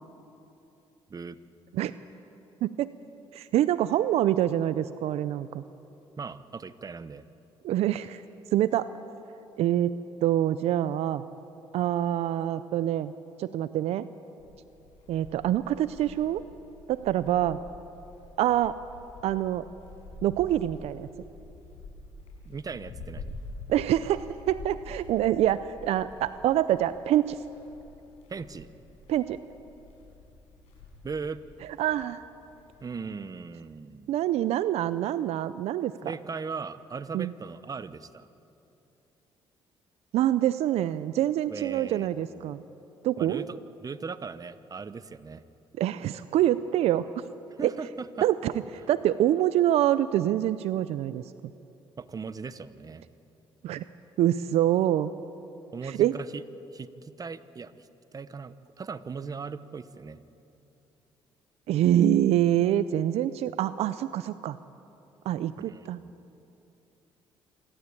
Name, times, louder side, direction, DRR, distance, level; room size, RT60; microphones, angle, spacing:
voice 1, 3.3-5.6 7.6-8.2 8.5-8.9 9.6-11.2 11.7-13.1 13.4-14.1 15.1-16.4 16.9-17.6 18.4-18.8 19.2-19.6 20.2-21.1 23.7-27.4 29.1-29.4 31.8-32.2 34.1-35.9 37.1-37.3 40.1-42.6 43.0-43.5 45.8-47.1 47.6-47.7 48.2-48.5 48.9-51.2 53.6-53.8 54.2-55.1 55.8-56.2 61.7-64.6 65.3-66.0, right 12 dB, 75° right, 14 dB, 0.5 m, -25 dB
voice 2, 6.2-7.2 22.4-23.4 28.3-28.7 31.0-31.4 32.8-34.1 36.0-38.3 41.5-42.5 43.2-45.4 47.6-48.3 52.0-53.0 55.7-56.4 56.7-60.2 65.6-66.1, right 5 dB, 35° right, 13 dB, 1.0 m, -38 dB
sound 1, 14.4-32.9, left 2 dB, 85° left, 6.2 m, -47 dB
27.0 x 12.5 x 8.6 m, 2.9 s
supercardioid pair, 70°, 11 cm